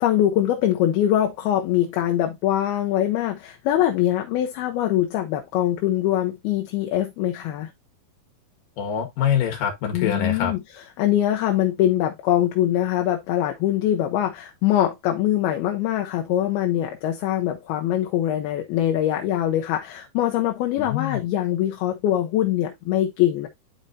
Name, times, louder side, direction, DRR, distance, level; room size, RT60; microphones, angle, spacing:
voice 1, 0.0-7.7 9.9-10.6 11.0-23.5, left 12 dB, 80° left, 2.7 m, -23 dB
voice 2, 8.8-10.5 20.8-21.2, left 9 dB, 65° left, 3.3 m, -24 dB
11.0 x 4.4 x 2.7 m
omnidirectional pair, 4.5 m